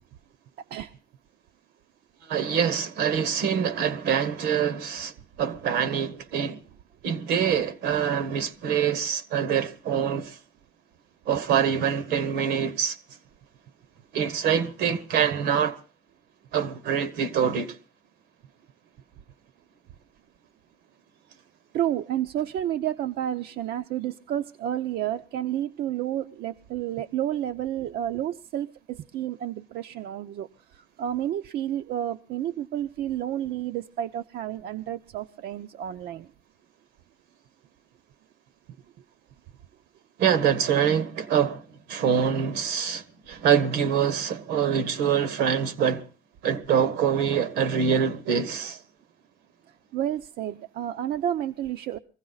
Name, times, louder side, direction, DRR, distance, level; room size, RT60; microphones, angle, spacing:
voice 1, 2.3-5.1 5.4-6.6 7.0-10.4 11.3-13.0 14.1-15.8 16.5-17.8 40.2-41.6 41.9-46.1 46.4-48.8, right 8 dB, 85° right, 1.5 m, -25 dB
voice 2, 21.7-30.5 30.7-36.3 49.9-52.0, right 11 dB, 70° right, 0.7 m, -30 dB
22.5 x 15.5 x 4.0 m
cardioid pair, 110°, 17 cm